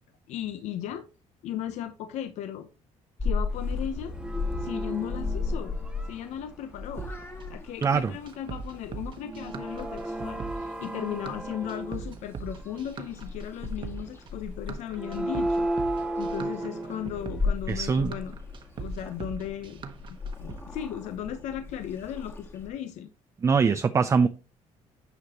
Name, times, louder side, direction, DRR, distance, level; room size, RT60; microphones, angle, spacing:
voice 1, 0.3-1.1 1.4-2.7 3.2-4.1 4.6-5.8 6.1-7.1 7.5-15.7 16.2-18.4 18.8-19.8 20.4-23.1, left 10 dB, 70° left, 0.8 m, -36 dB
Purr / Meow, 3.2-22.7, left 4 dB, 20° left, 1.5 m, -37 dB
sound 1, 3.7-3.8 4.0-6.5 7.0-7.4 9.2-12.2 12.7-12.8 14.8-17.5, right 1 dB, 5° right, 1.4 m, -34 dB
sound 2, 7.0-20.6, right 5 dB, 40° right, 1.2 m, -40 dB
voice 2, 7.8-8.1 17.7-18.1 23.4-24.3, right 5 dB, 25° right, 0.4 m, -22 dB
9.7 x 5.0 x 2.9 m
cardioid pair, 115°, 12 cm